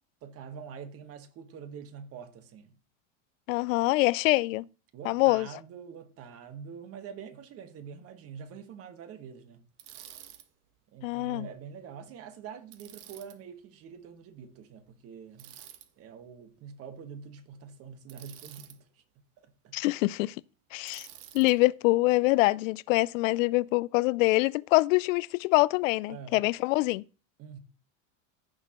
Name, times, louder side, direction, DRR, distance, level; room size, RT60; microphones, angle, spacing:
voice 1, 0.2-2.8 4.9-9.6 10.9-15.6 16.0-18.9 19.4-19.8 26.1-26.4 27.4-27.6, right 7 dB, 35° right, 1.4 m, -45 dB
voice 2, 3.5-4.7 5.0-5.5 11.0-11.5 19.7-20.3 20.7-21.1 21.3-27.0, left 21 dB, 85° left, 0.5 m, -25 dB
Bicycle, 9.8-10.5 12.7-13.4 15.4-15.9 18.1-18.8 20.9-21.5, right 12 dB, 55° right, 1.2 m, -49 dB
15.0 x 6.5 x 3.0 m
supercardioid pair, 145°, 38 cm